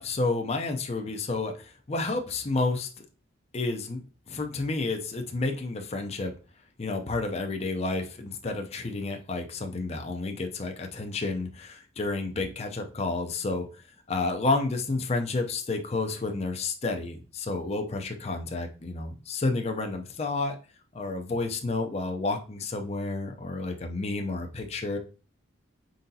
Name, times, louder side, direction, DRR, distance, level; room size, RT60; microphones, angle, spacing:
voice 1, 0.0-2.9 3.5-6.3 6.8-13.7 14.1-20.6 20.9-25.0, left 3 dB, 35° left, 4 dB, 0.5 m, -30 dB
4.8 x 3.9 x 2.7 m, 0.35 s
head